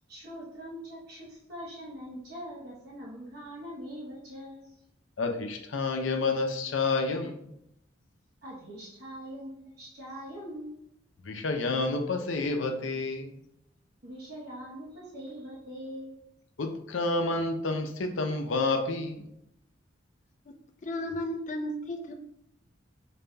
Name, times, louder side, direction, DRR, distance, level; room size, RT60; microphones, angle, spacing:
voice 1, 0.1-4.8 8.4-10.8 14.0-16.2, equal, 55° right, -6 dB, 1.0 m, -42 dB
voice 2, 5.2-7.5 11.2-13.4 16.6-19.3, left 3 dB, 85° left, 5 dB, 0.6 m, -29 dB
voice 3, 20.4-22.1, left 1 dB, 40° left, 4 dB, 0.4 m, -35 dB
5.3 x 4.1 x 2.3 m, 0.77 s
head